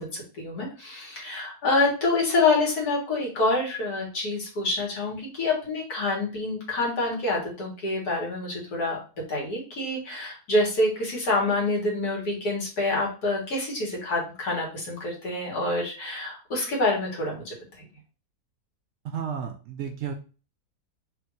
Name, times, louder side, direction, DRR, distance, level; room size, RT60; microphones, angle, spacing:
voice 1, 0.0-9.0 9.3-17.8, left 2 dB, 75° left, -2 dB, 2.1 m, -27 dB
voice 2, 19.0-20.1, right 7 dB, 65° right, 4 dB, 0.8 m, -32 dB
3.6 x 2.6 x 4.5 m, 0.35 s
omnidirectional pair, 1.7 m